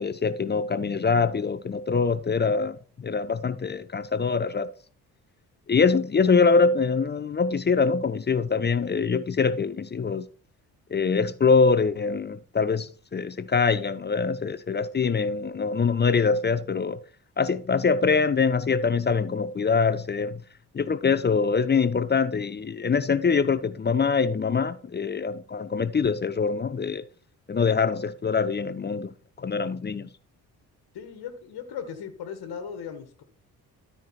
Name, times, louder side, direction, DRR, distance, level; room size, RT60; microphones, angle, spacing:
voice 1, 0.0-4.7 5.7-10.3 10.9-17.0 17.4-20.4 20.7-27.0 27.5-29.1 29.4-30.1, left 5 dB, 20° left, 0.6 m, -24 dB
voice 2, 30.9-33.2, left 7 dB, 50° left, 1.6 m, -37 dB
13.0 x 4.7 x 4.3 m
figure-of-eight pair, 40°, 49 cm